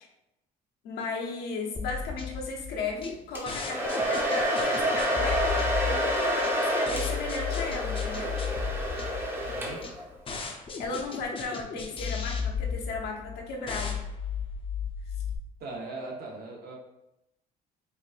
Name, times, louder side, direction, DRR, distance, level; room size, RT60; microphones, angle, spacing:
voice 1, 0.8-8.4 10.8-14.0, left 3 dB, 75° left, 0 dB, 0.8 m, -35 dB
sound 1, 1.8-15.4, left 6 dB, 30° left, 0.6 m, -35 dB
Domestic sounds home sounds, 3.4-10.1, equal, 10° right, 0.8 m, -28 dB
voice 2, 9.4-9.8 15.6-16.8, right 2 dB, 65° right, -1 dB, 1.1 m, -39 dB
4.6 x 2.6 x 2.5 m, 0.89 s
cardioid pair, 110°, 17 cm